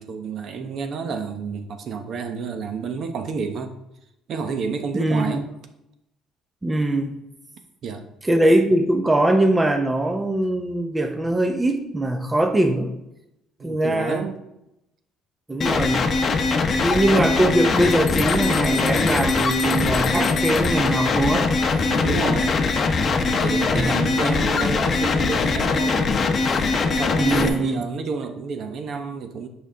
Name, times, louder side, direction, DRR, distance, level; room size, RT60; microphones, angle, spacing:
voice 1, 0.0-3.7 4.3-5.5 7.8-8.0 13.6-14.4 21.9-22.6 23.1-26.2 26.9-29.5, right 5 dB, 55° right, 7 dB, 0.8 m, -30 dB
voice 2, 4.9-5.3 6.6-7.2 8.2-12.9 13.6-14.3 15.5-16.1 16.8-21.5 23.5-23.9 27.2-27.8, right 1 dB, 15° right, 5 dB, 0.7 m, -21 dB
sound 1, 15.6-27.5, left 4 dB, 40° left, 0.8 m, -21 dB
sound 2, 17.8-20.9, left 11 dB, 75° left, 0.6 m, -35 dB
7.9 x 5.3 x 3.7 m, 0.86 s
cardioid pair, 120°, 0 cm